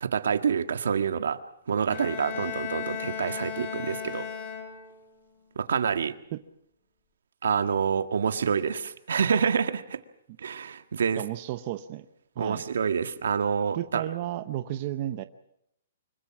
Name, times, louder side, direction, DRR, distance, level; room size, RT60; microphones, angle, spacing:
voice 1, 0.0-1.4 1.7-4.3 5.6-6.1 7.4-10.0 10.4-11.2 12.4-14.1, right 6 dB, 75° right, 9 dB, 1.6 m, -27 dB
Bowed string instrument, 1.9-5.1, left 7 dB, 25° left, 3.1 m, -36 dB
voice 2, 11.2-12.1 12.4-12.6 13.7-15.2, right 13 dB, 30° right, 10 dB, 0.8 m, -33 dB
25.5 x 22.5 x 6.1 m, 0.75 s
hypercardioid pair, 175°, 0 cm